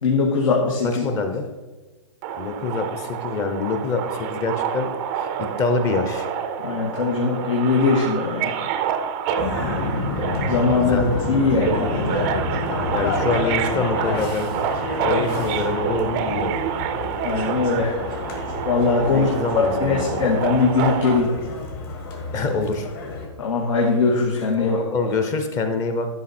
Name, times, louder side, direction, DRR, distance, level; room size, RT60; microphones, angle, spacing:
voice 1, 0.0-1.0 6.6-8.5 10.5-12.2 17.2-18.0 18.7-19.3 19.5-21.3 23.4-24.8, left 4 dB, 80° left, -1 dB, 1.9 m, -21 dB
voice 2, 1.0-1.5 2.4-4.0 4.3-4.9 5.2-6.3 10.8-11.0 12.9-14.5 15.0-16.5 19.0-20.2 22.3-22.9 24.6-26.1, left 4 dB, 20° left, 7 dB, 0.8 m, -25 dB
Subway metro underground, 2.2-21.2, right 8 dB, 25° right, 0.5 m, -28 dB
sound 1, 9.4-23.3, left 3 dB, 45° left, 2.2 m, -29 dB
12.0 x 5.7 x 4.3 m, 1.2 s
hypercardioid pair, 160°, 17 cm